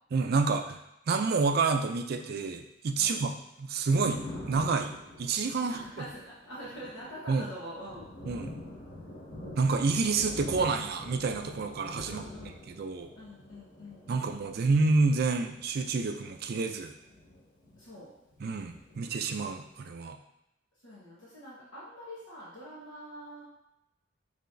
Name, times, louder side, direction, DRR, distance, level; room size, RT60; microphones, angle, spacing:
voice 1, 0.1-0.8 1.1-3.3 3.6-6.1 7.3-7.5 8.3-8.5 9.6-12.2 12.7-13.1 14.1-16.9 18.4-20.2, right 4 dB, 55° right, 6 dB, 0.4 m, -28 dB
Thunder, 3.6-18.1 18.3-19.6, left 1 dB, 50° left, 1.5 m, -46 dB
voice 2, 5.6-8.1 12.0-12.6 13.2-14.3 17.8-18.1 20.8-23.4, equal, 80° left, -8 dB, 1.2 m, -45 dB
5.6 x 3.3 x 2.6 m, 0.87 s
head